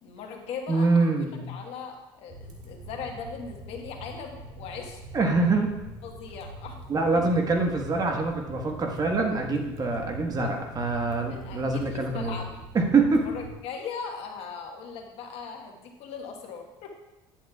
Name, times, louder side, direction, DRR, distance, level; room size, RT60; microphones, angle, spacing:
voice 1, 0.0-0.9 1.3-5.0 6.0-6.8 7.1-7.2 11.3-12.6 13.2-16.9, left 5 dB, 65° left, 2 dB, 1.4 m, -39 dB
voice 2, 0.7-1.5 5.1-5.7 6.9-12.4 12.7-13.3, right 3 dB, 35° right, 2 dB, 1.3 m, -25 dB
sound 1, 2.3-13.5, right 1 dB, 70° right, 1.7 m, -43 dB
10.5 x 7.5 x 2.4 m, 0.99 s
supercardioid pair, 90°, 11 cm